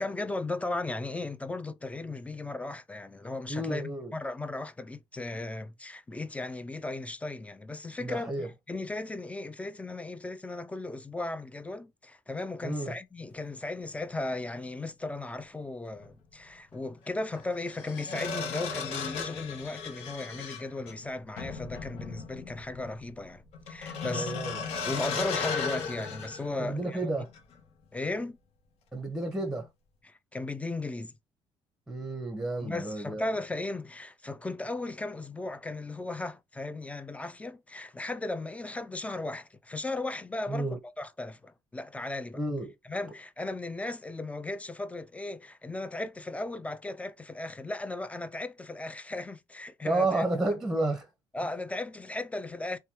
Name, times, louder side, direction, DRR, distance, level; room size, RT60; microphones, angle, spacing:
voice 1, 0.0-23.4 23.7-24.3 24.8-27.0 27.9-28.4 30.0-31.1 32.6-42.4 42.8-50.2 51.3-52.8, left 2 dB, 10° left, 0.4 m, -36 dB
voice 2, 3.5-4.1 8.0-8.5 12.6-12.9 24.0-24.6 26.6-27.3 28.9-29.7 31.9-33.2 40.5-40.8 42.4-42.7 49.8-51.1, right 2 dB, 5° right, 0.8 m, -31 dB
sound 1, 15.9-16.1 17.3-27.0 27.3-27.6, left 5 dB, 75° left, 0.8 m, -36 dB
3.2 x 2.3 x 2.8 m
cardioid pair, 95°, 11 cm